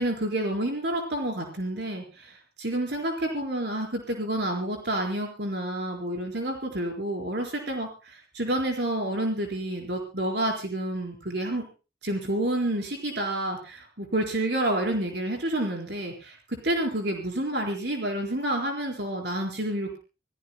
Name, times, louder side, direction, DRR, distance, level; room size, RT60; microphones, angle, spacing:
voice 1, 0.0-11.7 12.0-20.0, right 1 dB, 70° right, 1 dB, 4.2 m, -29 dB
27.0 x 17.5 x 2.2 m, 0.33 s
head